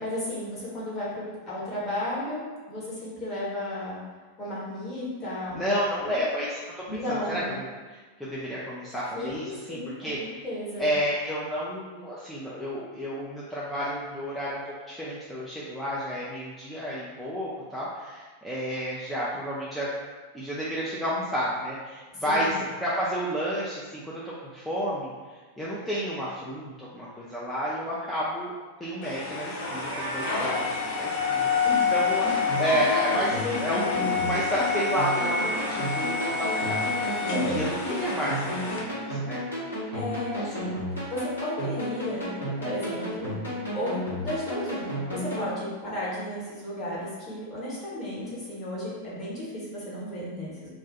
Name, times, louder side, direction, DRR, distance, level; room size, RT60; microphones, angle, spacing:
voice 1, 0.0-4.0 4.4-5.6 6.0-6.2 6.9-7.6 9.1-10.1 10.4-10.9 22.2-22.5 31.6-31.9 33.3-33.6 33.9-34.4 37.3-37.6 39.6-40.8 41.1-43.4 43.7-50.7, left 1 dB, 30° left, -7 dB, 1.2 m, -34 dB
voice 2, 5.5-7.4 7.9-10.4 10.8-19.9 20.3-28.5 28.8-32.3 32.6-39.4 40.4-40.5, equal, 5° left, -8 dB, 0.5 m, -31 dB
sound 1, 29.0-38.8, left 5 dB, 55° left, 0.6 m, -28 dB
Livestock farm animals working animals, 29.4-30.5 31.8-33.3, right 2 dB, 60° right, 0.4 m, -35 dB
sound 2, 32.3-45.5, equal, 75° left, 1.1 m, -33 dB
2.4 x 2.4 x 3.8 m, 1.3 s
figure-of-eight pair, 90°, 0 cm